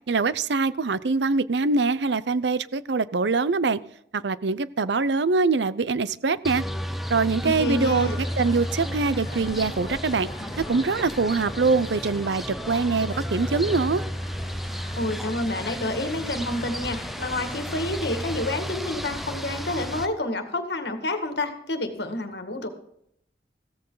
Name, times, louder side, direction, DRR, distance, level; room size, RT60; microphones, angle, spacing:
voice 1, 0.1-3.8 4.1-6.6 7.1-8.1 8.4-10.3 10.6-14.0, right 4 dB, 85° right, 17 dB, 0.6 m, -23 dB
sound 1, 6.4-20.1, equal, ahead, 0.6 m, -33 dB
voice 2, 7.4-8.1 15.0-22.7, left 2 dB, 75° left, 8 dB, 2.0 m, -29 dB
sound 2, 7.9-17.9, left 1 dB, 25° left, 3.3 m, -42 dB
15.5 x 14.0 x 4.0 m, 0.73 s
head